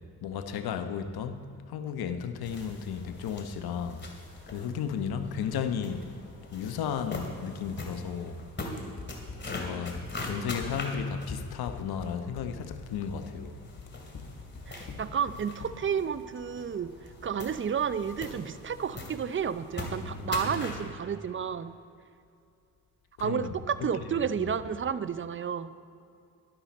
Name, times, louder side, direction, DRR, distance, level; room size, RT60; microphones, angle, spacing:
voice 1, 0.2-4.0 4.5-6.1 6.5-8.4 9.5-13.6 20.0-20.6 23.2-23.5 24.1-24.2, left 7 dB, 70° left, 0.9 m, -34 dB
sound 1, 2.4-20.9, left 2 dB, 30° left, 2.5 m, -42 dB
Run, 9.0-16.0, left 3 dB, 50° left, 1.7 m, -43 dB
voice 2, 14.7-16.9 17.2-21.7 23.2-25.7, right 7 dB, 30° right, 0.6 m, -31 dB
12.0 x 11.5 x 4.2 m
supercardioid pair, 65°, 38 cm